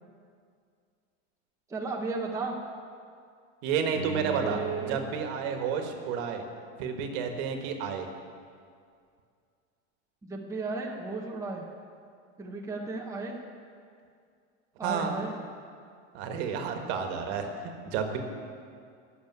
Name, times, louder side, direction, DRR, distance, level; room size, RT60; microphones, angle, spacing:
voice 1, 1.7-2.5 4.4-5.0 10.2-11.6 12.4-13.4 14.8-15.4, right 3 dB, 10° right, -1 dB, 1.0 m, -34 dB
voice 2, 3.6-6.4 6.8-8.1 14.8-15.2 16.1-17.4 17.8-18.2, right 6 dB, 60° right, 5 dB, 1.5 m, -31 dB
Bowed string instrument, 3.9-7.0 7.5-7.6, right 9 dB, 35° right, 1.2 m, -42 dB
11.5 x 6.8 x 9.4 m, 2.3 s
supercardioid pair, 145°, 37 cm